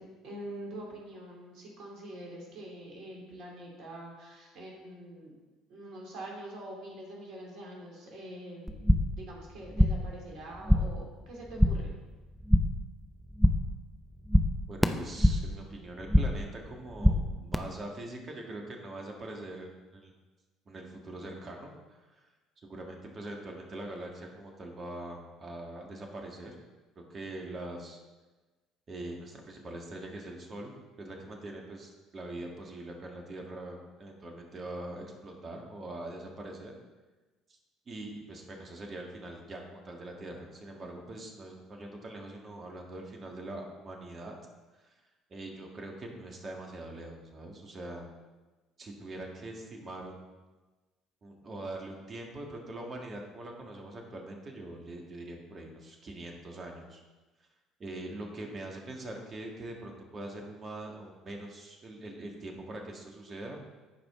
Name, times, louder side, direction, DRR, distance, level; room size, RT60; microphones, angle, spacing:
voice 1, 0.0-5.3 5.7-11.9, right 1 dB, 55° right, -2 dB, 2.8 m, -45 dB
sound 1, 8.7-9.2 9.5-10.1 10.4-11.0 11.3-11.9 12.2-12.9 13.2-13.8 14.0-15.6 15.8-16.5 16.7-17.5, equal, ahead, 0.7 m, -25 dB
voice 2, 14.7-20.1 20.7-22.3 22.6-26.6 27.0-28.0 28.9-36.7 37.5-37.6 37.9-44.3 44.7-45.0 45.3-48.1 48.8-50.3 51.2-57.0 57.8-63.6, right 2 dB, 35° right, 1 dB, 1.9 m, -43 dB
14.5 x 5.2 x 3.8 m, 1.2 s
figure-of-eight pair, 55°, 0 cm